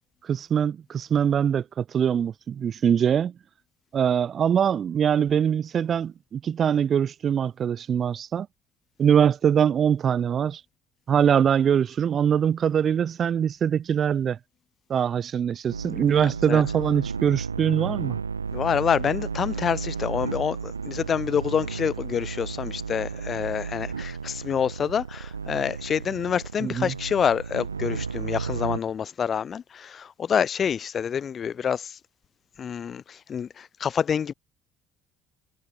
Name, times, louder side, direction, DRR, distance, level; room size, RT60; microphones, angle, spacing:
voice 1, 0.2-3.3 3.9-8.5 9.0-10.6 11.1-14.4 14.9-18.2 26.6-26.9, right 8 dB, 40° right, 0.4 m, -23 dB
sound 1, 15.7-28.8, right 5 dB, 85° right, 0.9 m, -33 dB
voice 2, 18.5-32.0 32.6-34.3, left 7 dB, 40° left, 0.5 m, -27 dB
figure-of-eight pair, 55°, 0 cm